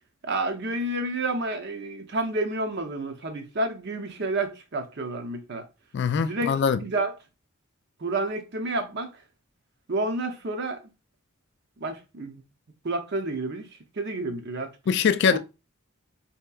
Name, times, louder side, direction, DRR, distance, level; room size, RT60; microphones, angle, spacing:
voice 1, 0.2-5.6 6.2-6.5 6.8-7.1 8.0-9.1 9.9-10.8 11.8-12.4 12.8-13.7 14.0-14.7 15.3-15.4, right 2 dB, 55° right, 0.7 m, -29 dB
voice 2, 5.9-6.8 14.9-15.4, left 6 dB, 55° left, 0.3 m, -22 dB
4.3 x 2.8 x 2.3 m
head